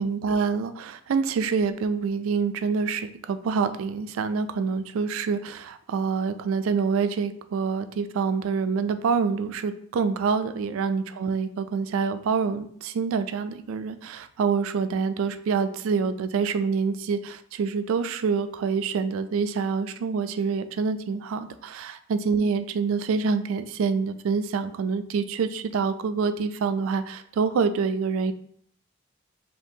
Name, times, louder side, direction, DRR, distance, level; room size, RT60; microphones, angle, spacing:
voice 1, 0.0-28.3, right 5 dB, 70° right, 10 dB, 0.3 m, -26 dB
5.2 x 2.8 x 2.7 m, 0.65 s
head